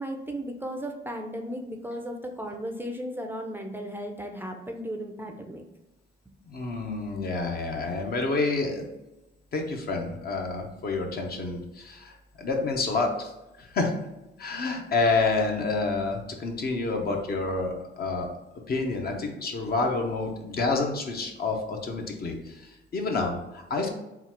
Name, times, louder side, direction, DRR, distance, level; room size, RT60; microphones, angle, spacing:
voice 1, 0.0-5.6, equal, 10° right, 3 dB, 0.5 m, -35 dB
voice 2, 6.5-8.8 9.5-13.3 13.6-13.9 14.4-18.3 18.7-23.9, left 3 dB, 50° left, 2 dB, 0.8 m, -28 dB
3.9 x 2.4 x 4.4 m, 0.95 s
cardioid pair, 90°, 20 cm